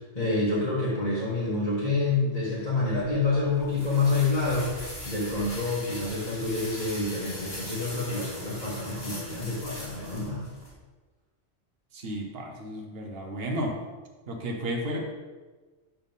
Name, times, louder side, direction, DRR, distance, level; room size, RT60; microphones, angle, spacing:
voice 1, 0.2-4.7 5.1-10.4, left 3 dB, 35° left, -11 dB, 1.9 m, -27 dB
sound 1, 2.9-10.7, left 1 dB, 55° left, 2.2 m, -41 dB
voice 2, 11.9-13.8 14.3-15.1, equal, 55° right, 1 dB, 1.3 m, -33 dB
12.0 x 4.1 x 3.6 m, 1.3 s
omnidirectional pair, 1.2 m